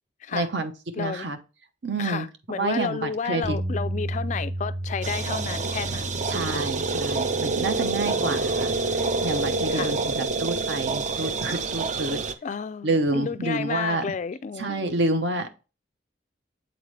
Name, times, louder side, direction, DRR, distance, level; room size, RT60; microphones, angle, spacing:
voice 1, 0.3-0.7 1.0-1.4 1.8-2.3 2.5-3.6 6.3-12.2 12.8-14.0 14.6-15.5, right 2 dB, 65° right, 0.9 m, -28 dB
voice 2, 1.0-1.3 2.0-6.7 8.0-8.5 9.7-10.0 12.4-15.0, left 6 dB, 40° left, 0.3 m, -32 dB
Bass guitar, 3.4-9.7, right 1 dB, 25° right, 1.1 m, -34 dB
sound 1, 5.0-12.3, right 3 dB, 40° right, 0.5 m, -27 dB
8.0 x 4.1 x 3.3 m
head